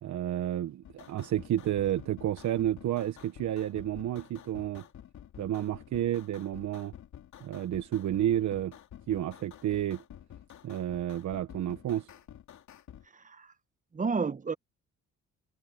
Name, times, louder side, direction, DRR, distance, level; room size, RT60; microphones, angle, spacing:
voice 1, 0.0-4.8 5.4-6.9 7.4-8.7 9.1-10.0 10.6-12.1, right 12 dB, 70° right, 1.2 m, -31 dB
sound 1, 0.8-13.1, left 10 dB, 70° left, 3.0 m, -50 dB
voice 2, 13.1-13.5 13.9-14.5, right 5 dB, 25° right, 1.0 m, -31 dB
cardioid pair, 90°, 30 cm